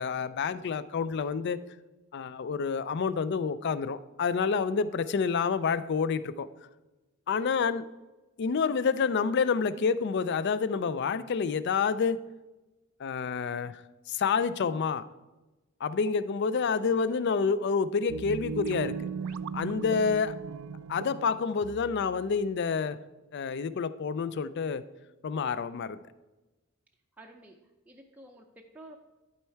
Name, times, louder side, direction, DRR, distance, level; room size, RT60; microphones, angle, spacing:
voice 1, 0.0-1.6 2.1-6.5 7.3-7.9 8.4-12.2 13.0-13.8 14.1-15.0 15.8-19.0 19.5-20.4 20.9-23.0 23.3-24.8 25.2-26.0, left 5 dB, 50° left, 15 dB, 0.4 m, -28 dB
sound 1, 18.1-22.4, right 5 dB, 90° right, 0.3 m, -37 dB
voice 2, 27.1-29.0, right 1 dB, 5° right, 0 dB, 0.5 m, -51 dB
11.5 x 4.4 x 4.5 m, 1.1 s
head